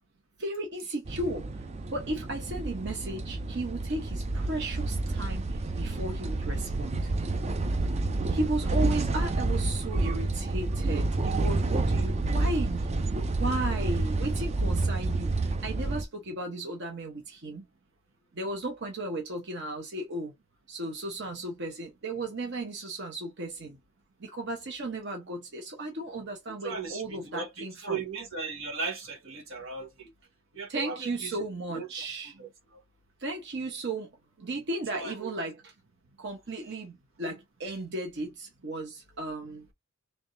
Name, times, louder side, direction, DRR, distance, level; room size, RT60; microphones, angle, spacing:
voice 1, 0.4-1.5 1.9-5.4 5.8-7.1 8.3-12.9 13.4-15.3 15.6-17.6 18.4-20.3 20.7-23.8 24.2-28.0 30.7-32.3 33.2-34.1 34.4-35.6 36.2-39.6, right 2 dB, 60° right, 0.9 m, -35 dB
sound 1, 1.1-16.0, right 2 dB, 30° right, 0.4 m, -29 dB
voice 2, 26.6-27.5 27.8-30.1 30.5-31.4 31.7-31.9 32.4-32.5 34.9-35.3, right 4 dB, 80° right, 1.3 m, -36 dB
3.5 x 3.3 x 2.6 m
head